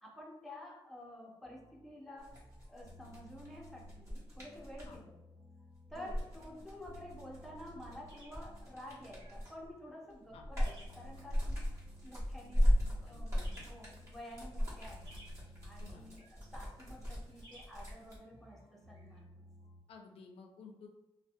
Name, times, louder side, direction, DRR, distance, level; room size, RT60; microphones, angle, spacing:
voice 1, 0.0-2.4 2.7-5.2 5.9-11.6 12.0-13.4 13.7-15.1 15.6-19.3, left 1 dB, ahead, -3 dB, 0.5 m, -50 dB
sound 1, 1.4-19.8, left 1 dB, 80° right, 0.7 m, -59 dB
sound 2, 2.2-5.0 5.9-9.7 10.1-18.2, equal, 30° right, 1.0 m, -37 dB
sound 3, 6.8-19.2, right 1 dB, 50° right, 1.3 m, -64 dB
voice 2, 13.0-13.7 15.8-16.0 19.9-20.9, left 4 dB, 75° left, 3 dB, 0.4 m, -54 dB
2.5 x 2.0 x 2.5 m, 1.0 s
wide cardioid pair, 150°, 10 cm